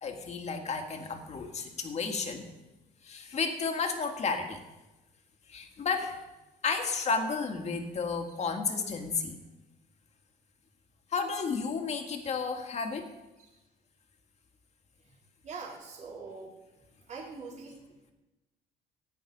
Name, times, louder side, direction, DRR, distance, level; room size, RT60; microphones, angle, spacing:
voice 1, 0.0-2.5 3.0-4.6 5.5-6.2 6.6-9.4 11.1-13.1, left 5 dB, 40° left, 4 dB, 2.0 m, -32 dB
voice 2, 15.4-16.5 17.1-18.1, right 4 dB, 45° right, -2 dB, 3.6 m, -43 dB
14.5 x 10.0 x 5.4 m, 1.0 s
cardioid pair, 110°, 17 cm